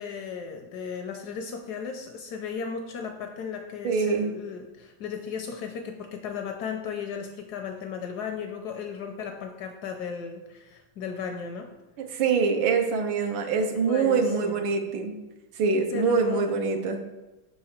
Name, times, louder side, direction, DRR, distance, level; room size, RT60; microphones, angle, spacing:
voice 1, 0.0-11.7 13.9-14.7 15.9-16.5, left 6 dB, 75° left, 4 dB, 0.9 m, -35 dB
voice 2, 3.8-4.3 12.1-15.1 15.6-17.0, right 5 dB, 85° right, 5 dB, 1.5 m, -24 dB
5.6 x 4.8 x 4.3 m, 1.1 s
omnidirectional pair, 2.1 m